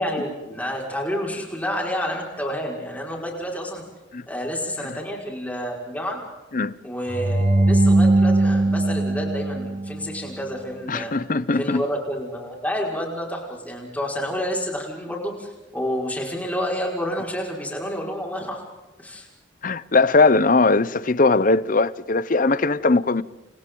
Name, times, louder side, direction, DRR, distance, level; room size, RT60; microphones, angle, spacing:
voice 1, 0.0-3.8 4.3-6.2 6.8-11.1 11.6-18.6 19.0-19.3, equal, 10° left, 5.2 m, -29 dB
sound 1, 7.1-10.3, right 2 dB, 35° right, 1.2 m, -20 dB
voice 2, 10.9-11.8 19.6-23.2, left 3 dB, 45° left, 0.7 m, -19 dB
29.5 x 29.0 x 3.9 m
head